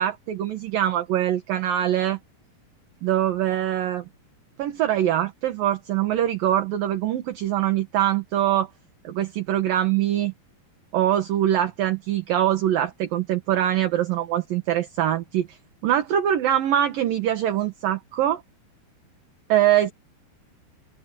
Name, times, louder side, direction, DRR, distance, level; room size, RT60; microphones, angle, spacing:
voice 1, 0.0-2.2 3.0-4.0 4.6-8.7 9.0-10.3 10.9-15.6 15.8-18.4 19.5-19.9, right 11 dB, 60° right, 3.0 m, -23 dB
open air
omnidirectional pair, 5.0 m